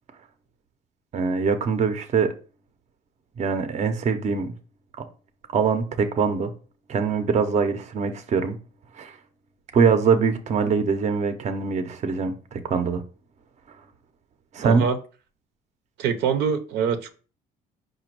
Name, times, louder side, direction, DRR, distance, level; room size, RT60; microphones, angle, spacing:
voice 1, 1.1-2.3 3.4-4.5 5.5-6.5 6.9-8.6 9.0-9.1 9.7-13.0 14.5-14.8, right 5 dB, 40° right, 0.6 m, -23 dB
voice 2, 14.6-15.0 16.0-17.1, right 7 dB, 80° right, 0.6 m, -24 dB
5.0 x 2.2 x 4.5 m
cardioid pair, 110°, 17 cm